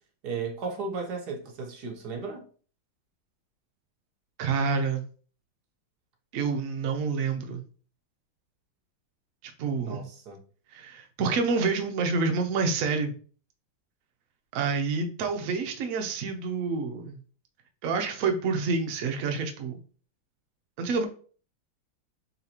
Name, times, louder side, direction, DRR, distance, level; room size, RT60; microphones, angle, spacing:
voice 1, 0.2-2.4 9.8-10.4, right 4 dB, 60° right, 1.3 m, -35 dB
voice 2, 4.4-5.0 6.3-7.6 9.6-10.0 10.7-13.1 14.5-17.2 17.8-19.8 20.8-21.0, right 4 dB, 85° right, 0.7 m, -28 dB
4.0 x 4.0 x 2.8 m
omnidirectional pair, 2.2 m